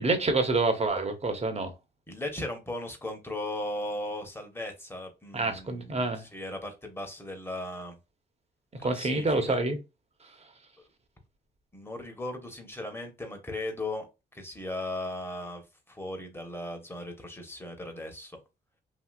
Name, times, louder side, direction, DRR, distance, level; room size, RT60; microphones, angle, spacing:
voice 1, 0.0-1.7 5.3-6.2 8.8-9.8, right 3 dB, 35° right, 1.1 m, -27 dB
voice 2, 2.1-8.0 8.8-9.6 11.7-14.1 14.3-15.6 15.9-18.4, left 1 dB, 10° left, 1.2 m, -37 dB
2.9 x 2.8 x 2.4 m
cardioid pair, 65°, 19 cm